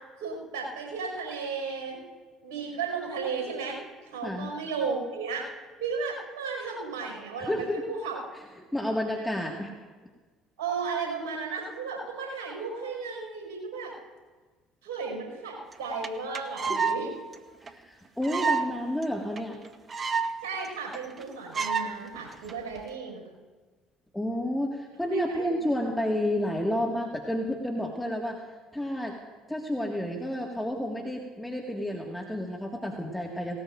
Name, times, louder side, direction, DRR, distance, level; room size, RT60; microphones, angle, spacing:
voice 1, 0.2-2.0 2.4-3.8 4.1-5.4 5.8-8.2 10.6-13.9 14.8-17.1 20.4-23.2 25.1-25.5, right 5 dB, 70° right, 0 dB, 5.6 m, -34 dB
voice 2, 4.2-4.6 7.4-7.8 8.7-9.7 16.6-16.9 17.6-19.6 24.1-28.4 28.7-29.2 29.5-33.6, equal, 5° left, 0 dB, 1.9 m, -30 dB
sound 1, 15.7-15.8 16.0-16.1 16.3-17.0 17.3-17.4 17.7-17.8 18.2-18.7 19.0-19.1 19.4-19.5 19.6-20.3 20.6-20.7 20.9-21.2 21.5-21.9 22.5-22.8, right 5 dB, 35° right, 1.0 m, -28 dB
18.5 x 18.5 x 2.6 m, 1.4 s
hypercardioid pair, 60°, 0 cm